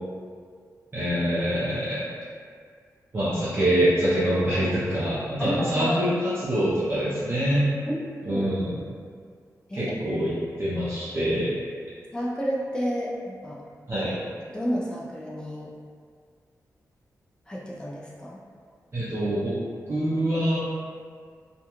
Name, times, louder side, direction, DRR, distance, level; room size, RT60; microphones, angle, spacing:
voice 1, 0.9-2.0 3.1-6.1 6.4-7.7 8.3-8.7 9.7-10.3 10.6-11.5 13.9-14.2 18.9-19.6 19.9-20.6, right 1 dB, 40° right, -11 dB, 0.6 m, -25 dB
voice 2, 5.4-6.0 7.9-8.6 9.7-9.9 12.1-13.6 14.5-15.7 17.5-18.4, equal, 15° left, -5 dB, 0.4 m, -31 dB
2.4 x 2.2 x 2.9 m, 2.1 s
wide cardioid pair, 100°, 6 cm